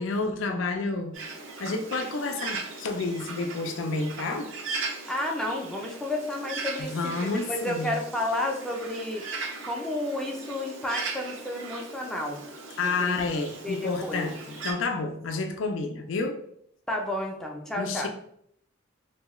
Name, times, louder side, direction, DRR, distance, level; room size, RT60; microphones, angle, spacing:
voice 1, 0.0-4.5 6.8-8.0 12.8-16.4 17.8-18.1, left 3 dB, 65° left, 0.4 m, -30 dB
Bird, 1.1-14.7, right 3 dB, 70° right, 0.6 m, -38 dB
voice 2, 5.1-7.1 7.5-12.4 12.8-13.2 13.6-14.2 16.9-18.1, left 1 dB, 5° left, 0.4 m, -31 dB
2.7 x 2.2 x 3.0 m
head